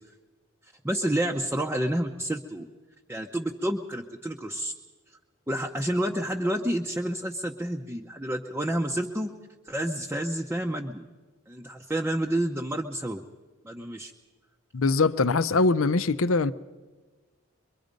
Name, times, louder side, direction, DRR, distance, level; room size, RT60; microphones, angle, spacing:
voice 1, 0.8-2.7 3.1-4.7 5.5-9.3 9.7-11.1 11.5-13.2 13.6-14.1, right 1 dB, 10° right, 0.7 m, -29 dB
voice 2, 14.7-16.5, left 3 dB, 70° left, 0.7 m, -22 dB
24.5 x 23.0 x 5.2 m
head